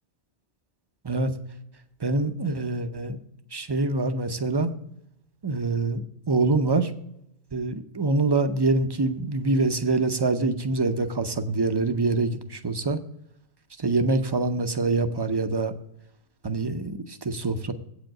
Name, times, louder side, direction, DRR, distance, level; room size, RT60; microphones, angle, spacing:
voice 1, 2.0-3.2 3.5-4.7 5.4-6.0 6.3-6.9 7.5-13.0 13.8-15.7 16.4-17.7, right 3 dB, 30° right, 8 dB, 0.5 m, -25 dB
8.5 x 5.0 x 7.6 m, 0.77 s
omnidirectional pair, 1.2 m